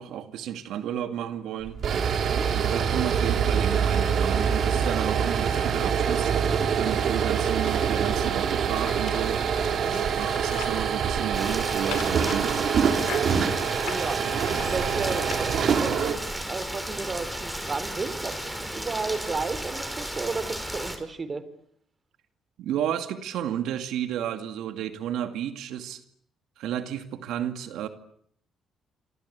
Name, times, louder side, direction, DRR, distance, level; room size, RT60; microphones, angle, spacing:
voice 1, 0.0-1.8 2.5-6.3 6.7-9.4 10.1-12.6 22.6-26.0 26.6-27.9, right 10 dB, 85° right, 8 dB, 2.3 m, -32 dB
sound 1, 1.6-16.2, right 7 dB, 60° right, 3.9 m, -25 dB
voice 2, 2.0-2.5 9.7-10.1 13.8-18.4 18.7-21.5, right 4 dB, 35° right, 14 dB, 3.6 m, -33 dB
sound 2, 7.3-10.9 11.3-15.9 16.6-16.7, left 9 dB, 80° left, 4.6 m, -42 dB
Rain, 11.3-21.0, right 1 dB, 5° right, 5.5 m, -34 dB
27.5 x 25.0 x 8.4 m, 0.67 s
cardioid pair, 90°, 0 cm